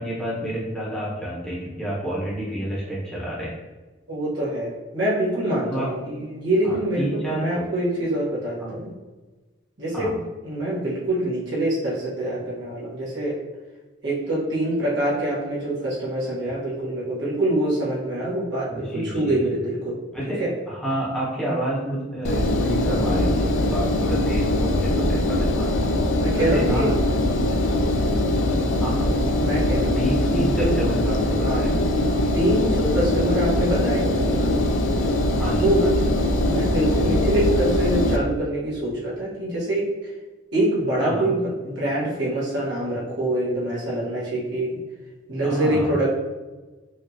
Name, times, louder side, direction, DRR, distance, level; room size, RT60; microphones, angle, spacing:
voice 1, 0.0-3.5 5.7-5.9 6.6-7.7 8.6-8.8 9.9-10.1 18.7-19.4 20.1-25.9 26.4-27.2 28.8-29.1 30.0-31.8 35.4-35.9 41.0-41.3 45.4-45.9, right 1 dB, 5° left, -7 dB, 1.1 m, -29 dB
voice 2, 4.1-7.0 7.3-8.9 9.8-10.1 10.4-13.4 14.0-20.0 20.4-20.5 26.2-26.9 29.4-30.0 30.3-30.7 31.4-31.6 32.3-34.5 35.6-35.8 36.4-39.9 40.5-44.8 45.3-46.2, right 1 dB, 60° right, -8 dB, 1.4 m, -25 dB
Engine, 22.2-38.2, left 1 dB, 90° left, 0.5 m, -22 dB
5.0 x 2.7 x 2.8 m, 1.2 s
head